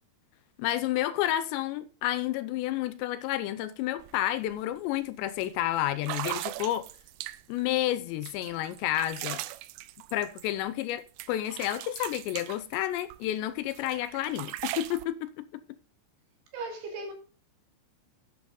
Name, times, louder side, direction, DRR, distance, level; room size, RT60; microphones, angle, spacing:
voice 1, 0.6-6.9 7.5-9.4 10.1-15.5, left 13 dB, 80° left, 2.7 m, -30 dB
sound 1, 4.0-4.1 4.5-4.8 5.4-5.5 6.0-7.6 8.2-10.9 11.2-13.3 13.7-15.1, right 17 dB, 85° right, 2.4 m, -39 dB
voice 2, 16.5-17.1, right 3 dB, 65° right, 4.4 m, -37 dB
10.5 x 8.7 x 3.7 m
omnidirectional pair, 5.3 m